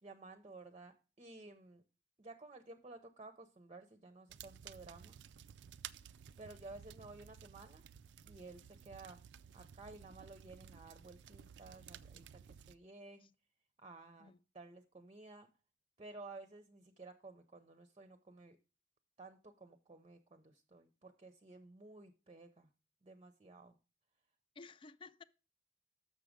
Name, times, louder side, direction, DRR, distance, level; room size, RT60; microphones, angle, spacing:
voice 1, 0.0-1.8 2.2-5.2 6.4-7.8 8.3-9.2 9.5-12.4 12.7-13.3 13.8-15.5 16.0-18.6 19.2-22.7 23.0-23.7, right 3 dB, 35° right, 0.6 m, -54 dB
sound 1, 4.3-12.8, right 8 dB, 85° right, 0.4 m, -55 dB
voice 2, 24.6-25.2, left 4 dB, 30° left, 0.3 m, -54 dB
6.4 x 6.1 x 5.0 m
head